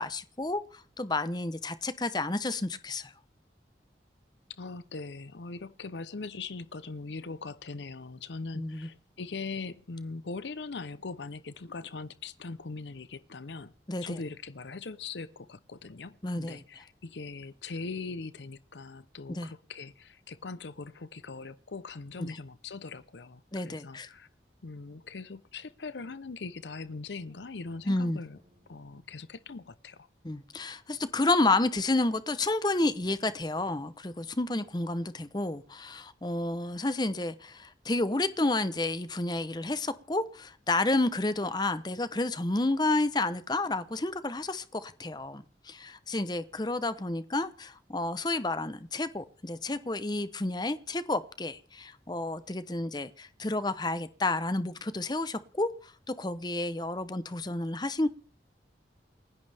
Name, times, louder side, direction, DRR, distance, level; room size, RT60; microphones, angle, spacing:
voice 1, 0.0-3.1 8.5-8.9 13.9-14.2 16.2-16.6 19.3-19.5 22.2-22.4 23.5-24.1 27.9-28.2 30.2-58.1, left 2 dB, 25° left, 0.8 m, -30 dB
voice 2, 4.6-13.7 14.0-24.3 24.6-28.4 28.7-30.1, left 4 dB, 85° left, 0.7 m, -41 dB
sound 1, 27.0-30.0, equal, 50° right, 6.9 m, -65 dB
29.0 x 11.0 x 3.4 m
head